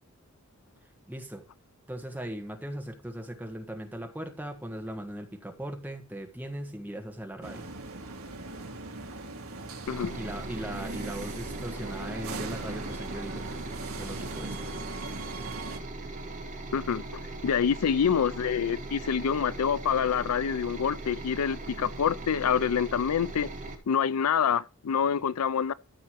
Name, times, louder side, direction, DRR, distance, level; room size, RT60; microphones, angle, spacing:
voice 1, 1.1-1.5 1.9-7.7 10.1-13.5 13.9-14.8, right 1 dB, 10° right, 1.4 m, -39 dB
sound 1, 7.4-15.8, right 3 dB, 70° right, 2.1 m, -39 dB
sound 2, 9.9-23.8, right 2 dB, 35° right, 2.4 m, -40 dB
voice 2, 16.7-17.0 17.4-23.5 23.9-25.7, left 7 dB, 80° left, 0.5 m, -26 dB
14.5 x 6.7 x 3.0 m
head